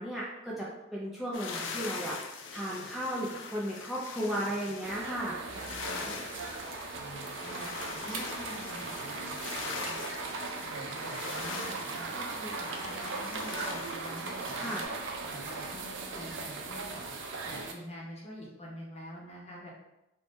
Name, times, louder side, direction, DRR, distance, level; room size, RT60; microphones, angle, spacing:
voice 1, 0.0-5.4 14.5-14.8, equal, ahead, -7 dB, 0.4 m, -35 dB
sound 1, 1.3-14.9, left 5 dB, 75° left, 0.4 m, -42 dB
sound 2, 4.8-17.7, right 3 dB, 75° right, 0.4 m, -38 dB
voice 2, 5.5-6.1 6.9-10.0 10.6-14.8 15.2-17.1 17.5-19.7, equal, 35° left, -3 dB, 0.7 m, -46 dB
2.7 x 2.1 x 3.3 m, 0.91 s
head